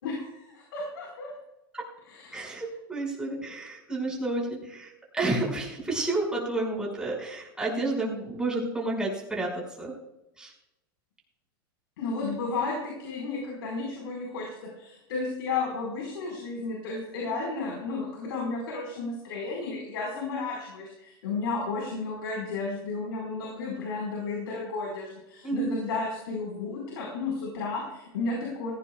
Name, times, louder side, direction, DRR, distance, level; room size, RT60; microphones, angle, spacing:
voice 1, 0.0-1.3 2.1-2.6 12.0-14.5 14.8-28.7, left 3 dB, 80° left, -1 dB, 4.9 m, -33 dB
voice 2, 2.3-9.9 10.4-10.5 25.4-25.8, right 2 dB, 5° right, -2 dB, 5.7 m, -30 dB
17.0 x 17.0 x 2.4 m, 0.92 s
supercardioid pair, 125°, 12 cm